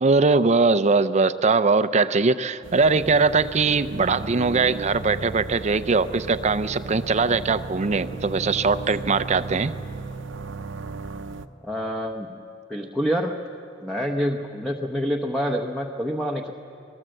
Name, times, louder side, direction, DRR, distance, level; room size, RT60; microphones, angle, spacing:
voice 1, 0.0-9.7, right 4 dB, 35° right, 12 dB, 0.5 m, -21 dB
sound 1, 2.6-11.5, right 3 dB, 80° right, 0.8 m, -35 dB
voice 2, 11.6-12.4 12.7-13.4 13.8-16.5, equal, ahead, 1 dB, 1.0 m, -27 dB
24.5 x 19.0 x 7.8 m, 2.6 s
head